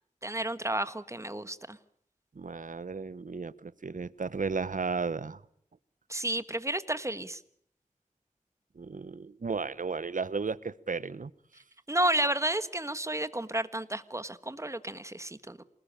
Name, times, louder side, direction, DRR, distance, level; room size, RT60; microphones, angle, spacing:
voice 1, 0.2-1.8 6.1-7.4 11.9-15.6, right 1 dB, 20° right, 13 dB, 1.5 m, -31 dB
voice 2, 2.3-5.4 8.8-11.3, right 4 dB, 75° right, 18 dB, 1.0 m, -34 dB
27.0 x 19.5 x 8.7 m, 0.64 s
wide cardioid pair, 60°, 14 cm